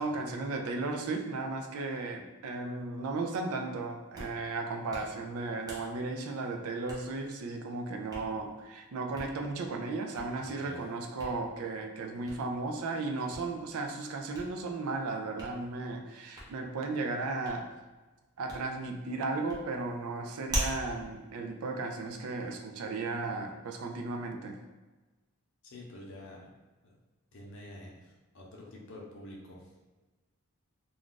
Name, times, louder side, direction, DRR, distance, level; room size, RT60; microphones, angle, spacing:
voice 1, 0.0-17.7 18.4-24.6, right 3 dB, 70° right, 3 dB, 0.4 m, -35 dB
Hands, 3.9-22.4, right 1 dB, 15° right, 0.6 m, -45 dB
voice 2, 10.4-10.8 25.6-26.5 26.8-26.9 27.3-29.7, left 1 dB, 55° left, -2 dB, 0.7 m, -48 dB
2.4 x 2.3 x 3.8 m, 1.2 s
head